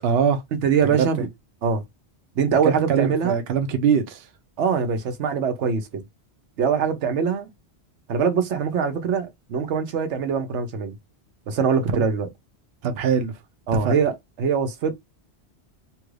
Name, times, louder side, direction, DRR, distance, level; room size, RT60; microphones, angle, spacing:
voice 1, 0.0-0.4 0.9-1.1 2.9-4.2 11.9-12.1 12.8-13.3 13.8-13.9, right 7 dB, 65° right, 0.8 m, -22 dB
voice 2, 0.6-1.3 1.6-1.8 2.4-3.4 4.6-6.0 6.6-7.5 8.1-10.9 11.5-12.3 13.7-14.9, right 6 dB, 85° right, 1.0 m, -23 dB
2.9 x 2.4 x 3.1 m
omnidirectional pair, 1.2 m